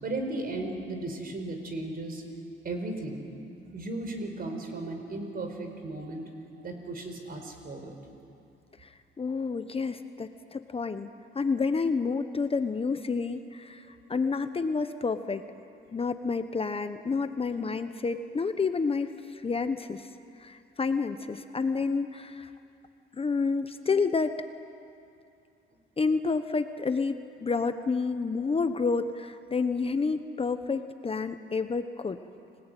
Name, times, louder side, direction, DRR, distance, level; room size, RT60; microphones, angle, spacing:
voice 1, 0.0-2.2 2.6-3.2 3.7-6.3 6.6-8.0, right 2 dB, 50° right, 5 dB, 4.9 m, -35 dB
voice 2, 8.8-11.1 11.3-15.4 15.9-20.1 20.4-22.5 23.1-24.4 26.0-32.2, left 4 dB, 30° left, 9 dB, 1.1 m, -29 dB
30.0 x 18.5 x 9.2 m, 2.6 s
cardioid pair, 90°, 20 cm